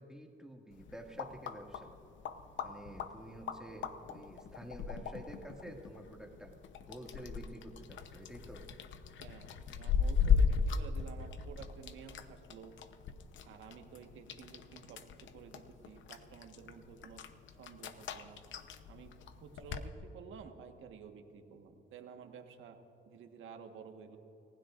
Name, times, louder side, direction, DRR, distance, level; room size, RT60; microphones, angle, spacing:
voice 1, 0.0-1.9 2.6-6.5 6.9-8.6, right 1 dB, 5° right, 0 dB, 2.1 m, -49 dB
sound 1, 0.7-19.9, left 6 dB, 70° left, 0.9 m, -37 dB
voice 2, 9.2-12.7 13.4-17.2 17.5-18.4 18.9-19.1 19.4-22.8 23.1-24.2, right 6 dB, 80° right, 5 dB, 1.5 m, -52 dB
29.0 x 16.0 x 2.6 m, 2.9 s
cardioid pair, 90°, 20 cm